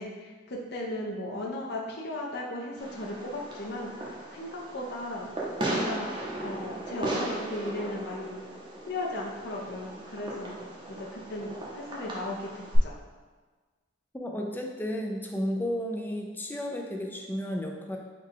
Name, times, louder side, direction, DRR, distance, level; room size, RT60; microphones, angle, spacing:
voice 1, 0.0-5.3 5.6-8.3 8.9-10.5 10.9-12.9, left 1 dB, 55° left, -1 dB, 0.6 m, -36 dB
Fireworks, 2.8-12.8, right 1 dB, 25° right, 0.7 m, -37 dB
voice 2, 14.1-18.0, equal, 10° left, 1 dB, 0.3 m, -33 dB
3.8 x 2.3 x 4.5 m, 1.4 s
head